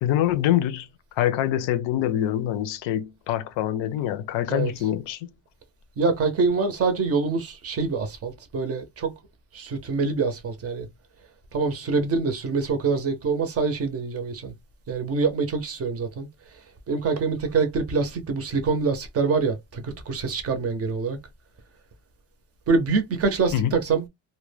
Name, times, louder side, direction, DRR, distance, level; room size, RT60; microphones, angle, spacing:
voice 1, 0.0-0.9 1.2-5.3 23.5-23.7, left 12 dB, 90° left, 0.5 m, -25 dB
voice 2, 4.5-4.9 6.0-9.1 9.5-10.9 11.5-14.6 14.9-16.3 16.9-21.2 22.7-24.1, right 4 dB, 35° right, 0.4 m, -25 dB
2.2 x 2.1 x 3.2 m
cardioid pair, 180°, 43 cm